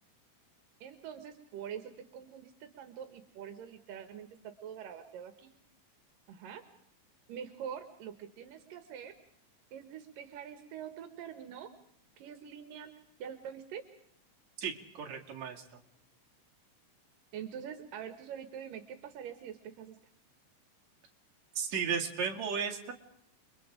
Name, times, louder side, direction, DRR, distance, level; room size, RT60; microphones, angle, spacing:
voice 1, 0.8-5.5 6.3-6.6 7.3-9.1 9.7-11.7 12.2-12.9 13.2-13.8 17.3-20.0, right 8 dB, 85° right, 9 dB, 3.0 m, -45 dB
voice 2, 14.6-15.6 21.6-22.9, right 6 dB, 55° right, 1 dB, 3.5 m, -34 dB
30.0 x 23.0 x 5.1 m, 0.72 s
omnidirectional pair, 3.8 m